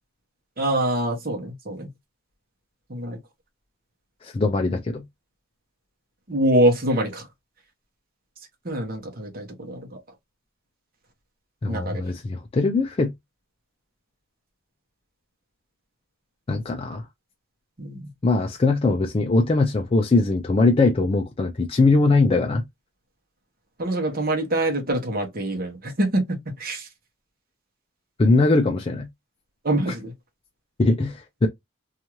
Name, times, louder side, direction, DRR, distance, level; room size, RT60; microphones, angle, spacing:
voice 1, 0.6-1.9 2.9-3.2 6.3-7.3 8.6-9.8 11.7-12.0 17.8-18.1 23.8-26.9 29.6-30.1, right 1 dB, 45° right, 0.9 m, -24 dB
voice 2, 4.2-5.0 11.6-13.1 16.5-17.0 18.2-22.6 28.2-29.1 30.8-31.5, left 3 dB, 25° left, 0.3 m, -21 dB
2.7 x 2.4 x 3.0 m
head